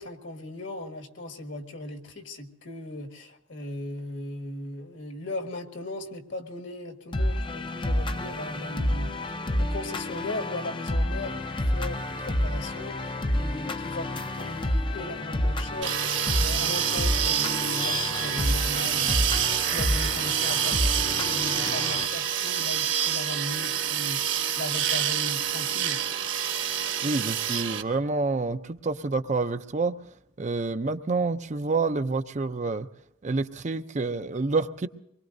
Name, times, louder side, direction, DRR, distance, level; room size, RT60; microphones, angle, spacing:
voice 1, 0.0-9.1 9.6-15.9 16.4-19.2 19.6-26.0, left 1 dB, 65° left, 4 dB, 1.8 m, -37 dB
sound 1, 7.1-22.1, left 1 dB, 25° left, 0.5 m, -29 dB
sound 2, 15.8-27.8, right 9 dB, 65° right, 1.3 m, -27 dB
voice 2, 27.0-29.9 30.4-32.9 33.2-34.9, right 3 dB, 35° right, 10 dB, 0.5 m, -28 dB
24.5 x 21.5 x 2.7 m, 0.80 s
head